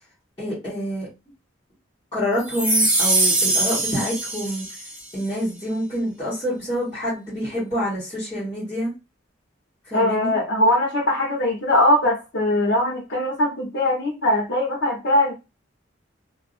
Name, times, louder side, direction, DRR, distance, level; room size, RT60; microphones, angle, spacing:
voice 1, 0.4-1.1 2.1-4.6 5.1-8.9 9.8-10.3, equal, 20° left, -10 dB, 1.3 m, -27 dB
sound 1, 2.5-5.0, right 2 dB, 5° right, 0.6 m, -22 dB
voice 2, 9.9-15.3, left 1 dB, 60° left, -3 dB, 0.9 m, -21 dB
2.6 x 2.3 x 2.5 m, 0.26 s
head